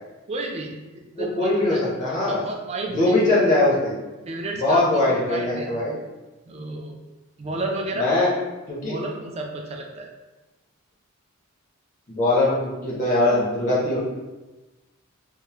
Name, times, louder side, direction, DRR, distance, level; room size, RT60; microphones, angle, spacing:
voice 1, 0.3-3.3 4.3-5.7 6.5-7.0 7.4-8.1 8.8-10.1, right 2 dB, 30° right, 1 dB, 0.3 m, -32 dB
voice 2, 1.2-2.4 2.9-4.0 4.5-6.0 7.9-8.3 8.7-8.9 12.1-14.0, left 2 dB, 35° left, -6 dB, 0.6 m, -21 dB
3.6 x 2.0 x 2.8 m, 1.1 s
head